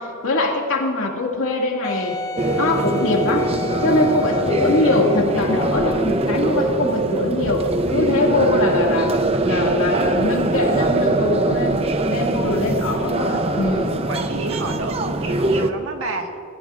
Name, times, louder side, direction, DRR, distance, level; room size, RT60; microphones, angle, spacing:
voice 1, 0.0-2.2 2.6-3.5 3.8-7.6 7.9-9.2 9.4-11.8 12.1-14.0, left 2 dB, 80° left, 0 dB, 2.2 m, -22 dB
Wind instrument woodwind instrument, 1.8-6.1 6.8-6.9, left 4 dB, 20° left, 0.4 m, -31 dB
sound 1, 2.4-15.7, right 2 dB, 30° right, 0.7 m, -22 dB
voice 2, 12.8-13.7 14.0-16.4, right 2 dB, 75° right, 2 dB, 1.6 m, -30 dB
22.5 x 15.0 x 2.5 m, 2.5 s
head